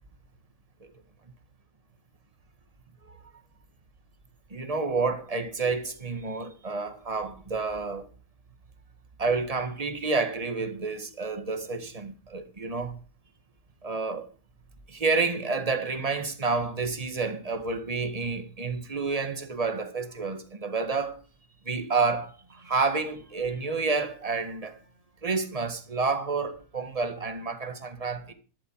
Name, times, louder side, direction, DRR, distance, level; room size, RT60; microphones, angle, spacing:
voice 1, 4.5-8.1 9.2-13.0 13.8-14.3 14.9-21.2 21.7-24.8 25.2-28.3, right 4 dB, 25° right, 1.8 m, -29 dB
13.0 x 11.5 x 4.7 m
omnidirectional pair, 1.7 m